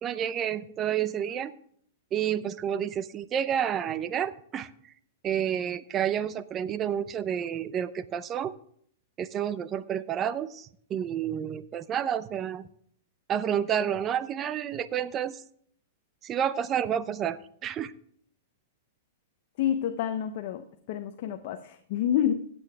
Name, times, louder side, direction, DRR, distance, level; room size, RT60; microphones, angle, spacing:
voice 1, 0.0-1.5 2.1-4.7 5.2-8.5 9.2-12.7 13.3-15.4 16.2-17.9, right 9 dB, 25° right, 15 dB, 0.6 m, -30 dB
voice 2, 19.6-22.3, left 10 dB, 50° left, 7 dB, 0.8 m, -28 dB
15.0 x 7.9 x 3.5 m, 0.63 s
hypercardioid pair, 150°, 0 cm